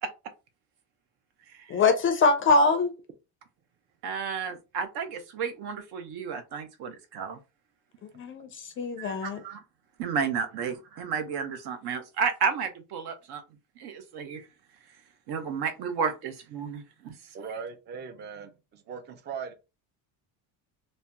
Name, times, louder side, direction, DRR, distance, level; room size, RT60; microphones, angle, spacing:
voice 1, 1.7-2.9 8.1-9.4, left 3 dB, 35° left, 0.4 m, -23 dB
voice 2, 4.0-7.4 9.0-9.6 10.0-13.4 13.8-14.4 15.3-17.1, right 6 dB, 70° right, 0.8 m, -32 dB
voice 3, 17.3-19.5, right 6 dB, 25° right, 0.4 m, -39 dB
2.7 x 2.0 x 3.4 m
cardioid pair, 140°, 40 cm